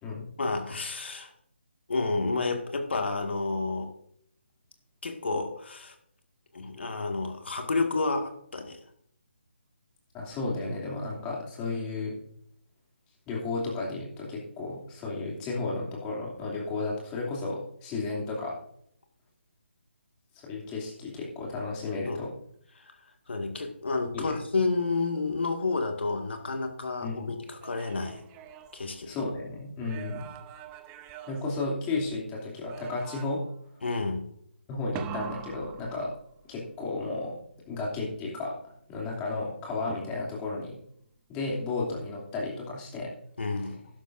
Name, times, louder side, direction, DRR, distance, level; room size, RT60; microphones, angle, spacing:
voice 1, 0.4-1.3 1.9-3.9 5.0-6.0 6.5-8.8 22.1-22.2 22.8-22.9 23.3-28.2 28.7-29.1 33.8-34.3 43.4-43.9, left 3 dB, 65° left, 4 dB, 2.0 m, -30 dB
voice 2, 10.1-12.1 13.3-18.5 20.4-22.3 24.1-24.3 27.0-27.3 29.1-30.3 31.3-33.4 34.7-36.1 36.5-37.4 37.7-38.6 38.9-40.8 41.3-43.1, left 3 dB, 15° left, -3 dB, 2.8 m, -33 dB
sound 1, 27.4-29.3 29.8-32.2 32.7-33.6 35.0-36.6 39.9-40.6, right 10 dB, 15° right, 0.5 m, -44 dB
13.0 x 11.5 x 2.6 m, 0.68 s
figure-of-eight pair, 150°, 6 cm